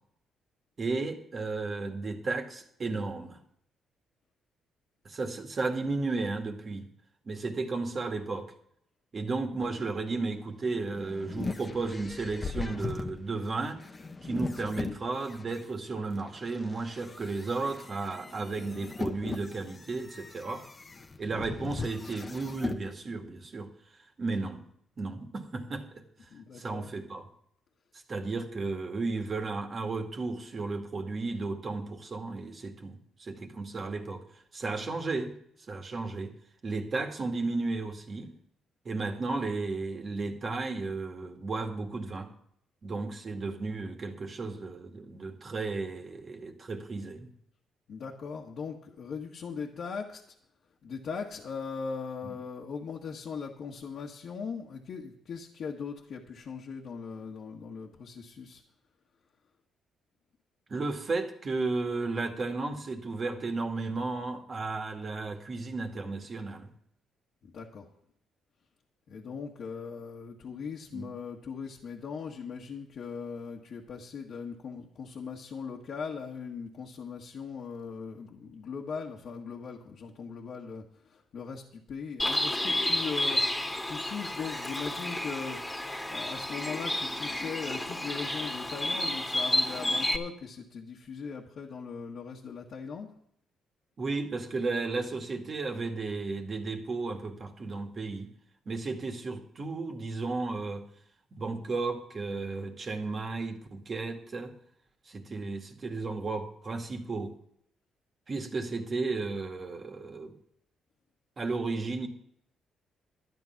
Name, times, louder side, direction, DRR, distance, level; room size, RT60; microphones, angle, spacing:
voice 1, 0.8-3.4 5.0-6.9 7.3-8.5 9.1-13.8 14.2-20.6 21.2-23.7 24.2-24.6 25.0-26.0 26.5-27.2 28.1-34.2 34.5-35.3 35.7-36.3 36.6-38.3 38.9-42.3 42.8-47.3 52.2-52.3 60.7-66.7 70.9-71.1 94.0-98.3 98.7-100.9 101.3-104.5 105.1-107.3 108.3-110.4 111.4-112.1, right 3 dB, 40° right, 4 dB, 2.1 m, -34 dB
sound 1, 10.6-15.6 16.2-22.8, left 3 dB, 30° left, 1.1 m, -39 dB
voice 2, 26.3-26.9 47.9-50.2 50.8-58.6 67.5-67.9 69.1-83.6 83.8-93.1, left 5 dB, 60° left, -2 dB, 1.6 m, -39 dB
Bird, 82.2-90.2, left 1 dB, 15° left, 2.1 m, -31 dB
12.5 x 9.8 x 5.9 m, 0.70 s
cardioid pair, 90°, 0 cm